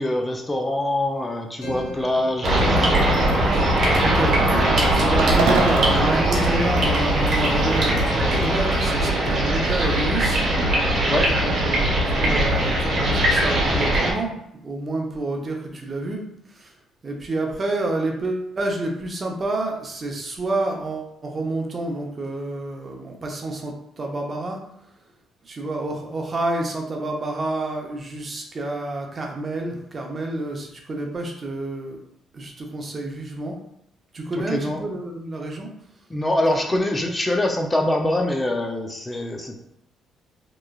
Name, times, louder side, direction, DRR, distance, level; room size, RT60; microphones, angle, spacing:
voice 1, 0.0-3.0 11.1-11.3 34.5-34.8 36.1-39.6, left 1 dB, 20° left, 2 dB, 0.4 m, -24 dB
sound 1, 1.6-9.3, equal, 80° left, 0.6 m, -34 dB
sound 2, 2.4-14.1, right 1 dB, 55° right, 0.9 m, -20 dB
voice 2, 4.0-10.4 11.3-16.2 16.5-16.7 17.0-24.9 25.4-32.0 32.3-33.6 34.1-35.7 36.5-36.8, right 2 dB, 35° right, 1 dB, 0.6 m, -29 dB
sound 3, 5.2-7.5, right 4 dB, 85° right, 0.3 m, -28 dB
3.0 x 2.2 x 2.3 m, 0.76 s
cardioid pair, 80°, 0 cm